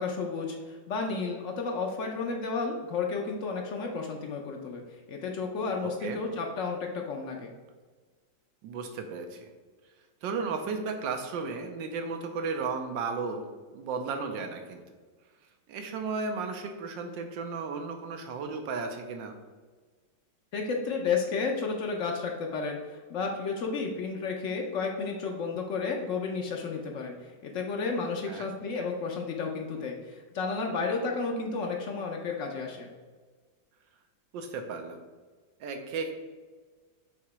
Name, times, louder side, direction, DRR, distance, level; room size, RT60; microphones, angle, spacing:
voice 1, 0.0-7.5 20.5-32.9, left 4 dB, 90° left, 1 dB, 0.6 m, -32 dB
voice 2, 5.8-6.2 8.6-9.5 10.2-13.5 13.7-14.8 15.7-19.3 28.2-28.5 34.3-35.0 35.6-36.1, right 4 dB, 75° right, 5 dB, 1.4 m, -34 dB
7.2 x 2.9 x 4.7 m, 1.4 s
omnidirectional pair, 2.1 m